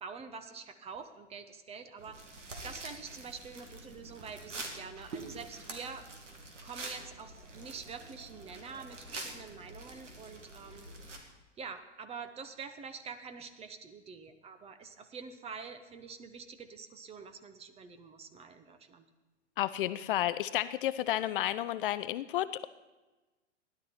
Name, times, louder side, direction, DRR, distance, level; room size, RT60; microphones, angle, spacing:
voice 1, 0.0-6.1 6.6-11.2 11.6-19.0, right 5 dB, 15° right, 9 dB, 0.8 m, -46 dB
sound 1, 2.0-11.2, right 2 dB, 80° right, 2.4 m, -46 dB
voice 2, 19.6-22.7, left 13 dB, 50° left, 15 dB, 0.5 m, -31 dB
16.5 x 11.0 x 4.3 m, 1.2 s
hypercardioid pair, 115°, 36 cm